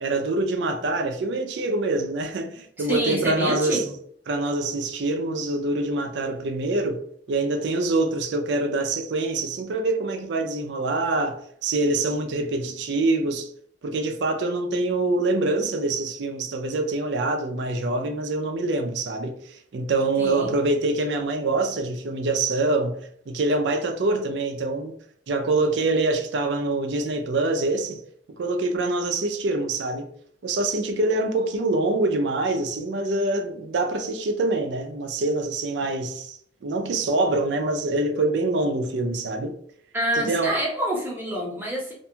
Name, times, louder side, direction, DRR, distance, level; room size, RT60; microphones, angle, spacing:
voice 1, 0.0-3.8 4.3-7.0 7.3-13.5 13.8-25.0 25.3-28.0 28.4-30.1 30.4-39.6 40.1-40.6, right 2 dB, 80° right, 0.4 m, -25 dB
voice 2, 2.8-3.9 20.2-20.5 39.9-41.9, right 1 dB, 10° right, 0.8 m, -27 dB
2.5 x 2.2 x 2.7 m
head